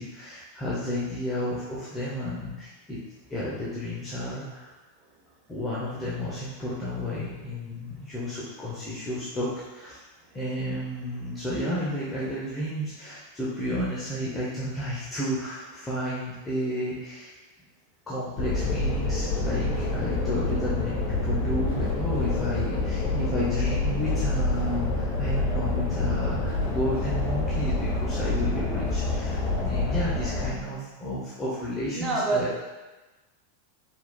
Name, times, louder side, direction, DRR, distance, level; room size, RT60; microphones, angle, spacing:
voice 1, 0.0-3.0 3.3-4.7 5.5-10.1 10.3-17.3 18.1-32.5, left 1 dB, 15° left, -8 dB, 0.8 m, -32 dB
sound 1, 18.4-30.5, left 2 dB, 50° left, 0.9 m, -27 dB
voice 2, 31.9-32.6, right 3 dB, 25° right, -2 dB, 0.9 m, -27 dB
4.5 x 3.6 x 2.3 m, 1.1 s
figure-of-eight pair, 90°, 0 cm